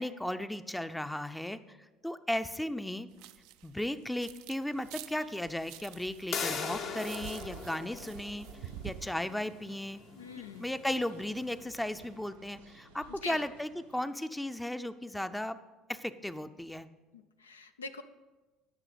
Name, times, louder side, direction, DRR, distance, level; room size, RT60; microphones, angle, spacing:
voice 1, 0.0-1.8 2.0-3.1 3.6-8.5 8.8-10.0 10.6-15.6 15.9-16.9, left 1 dB, 5° left, 11 dB, 0.5 m, -35 dB
sound 1, 3.1-4.6 4.8-9.1, right 13 dB, 65° right, 0.3 m, -47 dB
sound 2, 4.7-14.1, right 3 dB, 90° right, 1.1 m, -60 dB
sound 3, 6.3-11.9, left 5 dB, 55° left, 1.0 m, -41 dB
voice 2, 10.2-10.7 13.1-13.4 17.1-18.0, left 4 dB, 90° left, 9 dB, 0.4 m, -43 dB
11.5 x 5.9 x 5.1 m, 1.2 s
hypercardioid pair, 60°, 0 cm